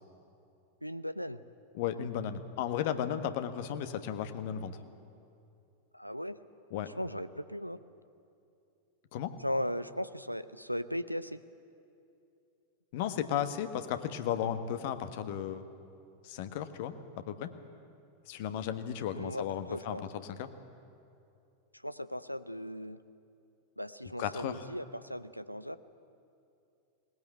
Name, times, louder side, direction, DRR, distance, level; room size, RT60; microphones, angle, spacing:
voice 1, 0.8-1.4 5.9-6.4 7.0-7.8 9.4-11.4 19.1-20.0 21.8-23.0 23.8-25.8, equal, 90° left, 14 dB, 0.7 m, -37 dB
voice 2, 1.7-4.8 6.7-6.9 9.1-9.3 12.9-15.6 16.2-16.9 17.3-17.5 18.3-20.0 20.2-20.5 24.2-24.6, left 9 dB, 50° left, 9 dB, 1.3 m, -34 dB
20.5 x 19.5 x 9.1 m, 2.6 s
figure-of-eight pair, 90°, 0 cm